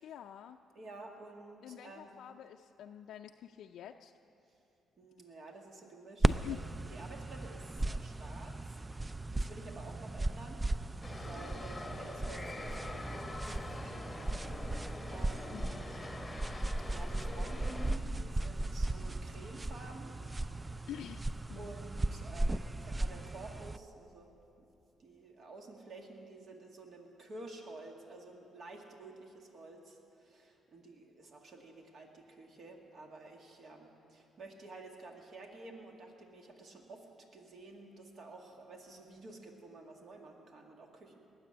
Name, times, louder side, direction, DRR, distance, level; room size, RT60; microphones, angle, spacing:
voice 1, 0.0-0.6 1.6-4.1 6.2-6.6 15.5-15.8 20.9-21.2 21.5-21.7, left 11 dB, 75° left, 3 dB, 0.4 m, -46 dB
voice 2, 0.8-2.1 5.0-6.6 6.9-10.6 11.1-15.9 16.9-20.2 21.6-24.3 24.6-24.7 25.0-41.2, right 2 dB, 55° right, 2 dB, 2.0 m, -51 dB
sound 1, 6.2-23.8, right 2 dB, 20° right, 0.3 m, -36 dB
sound 2, 11.0-18.0, left 2 dB, 10° left, 1.2 m, -45 dB
19.5 x 7.5 x 9.6 m, 2.8 s
cardioid pair, 90°, 0 cm